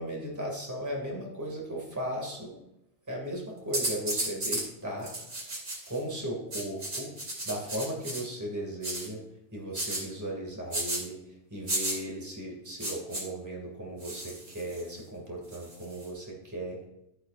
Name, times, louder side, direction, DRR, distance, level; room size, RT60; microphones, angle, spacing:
voice 1, 0.0-2.6 3.1-5.1 5.9-7.1 7.4-9.2 9.5-11.2 11.5-16.9, right 1 dB, 15° right, -2 dB, 2.3 m, -36 dB
sound 1, 3.7-4.7 5.0-6.0 6.5-8.2 8.8-9.1 9.7-10.0 10.7-11.0 11.7-12.0 12.8-13.2 14.0-14.9 15.5-16.1, right 1 dB, 90° right, 3.2 m, -33 dB
13.5 x 8.9 x 2.6 m, 0.85 s
omnidirectional pair, 1.2 m